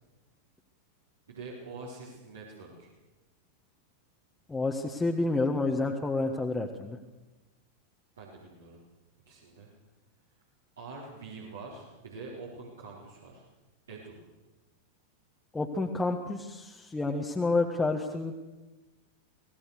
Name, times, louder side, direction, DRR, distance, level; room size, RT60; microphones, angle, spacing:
voice 1, 1.3-2.9 8.2-8.8 9.3-9.7 10.8-13.4 13.9-14.2, right 3 dB, 70° right, -4 dB, 4.4 m, -45 dB
voice 2, 4.5-7.0 15.5-18.3, left 3 dB, 10° left, 1 dB, 1.6 m, -29 dB
24.5 x 18.0 x 6.7 m, 1.1 s
figure-of-eight pair, 90°, 0 cm